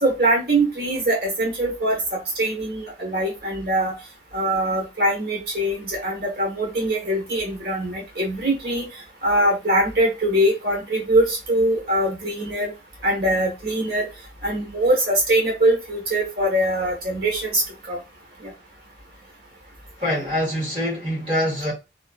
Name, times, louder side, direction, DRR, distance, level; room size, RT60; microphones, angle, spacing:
voice 1, 0.0-3.9 4.3-8.9 9.2-12.7 13.0-14.1 14.4-18.0, right 1 dB, 60° right, 1.2 m, -22 dB
voice 2, 20.0-21.7, equal, 30° right, 1.4 m, -24 dB
3.0 x 2.4 x 2.3 m
head